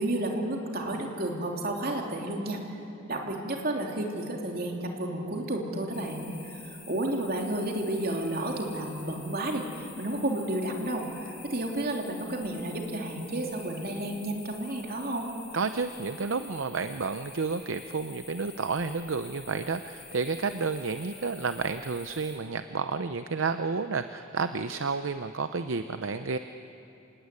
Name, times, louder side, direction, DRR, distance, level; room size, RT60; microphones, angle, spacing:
voice 1, 0.0-2.6 3.1-15.3, right 1 dB, 45° right, 1 dB, 3.2 m, -31 dB
sound 1, 5.9-22.4, left 5 dB, 35° left, 7.8 m, -48 dB
voice 2, 15.5-26.4, right 4 dB, 65° right, 9 dB, 0.7 m, -31 dB
27.0 x 18.0 x 9.7 m, 2.8 s
head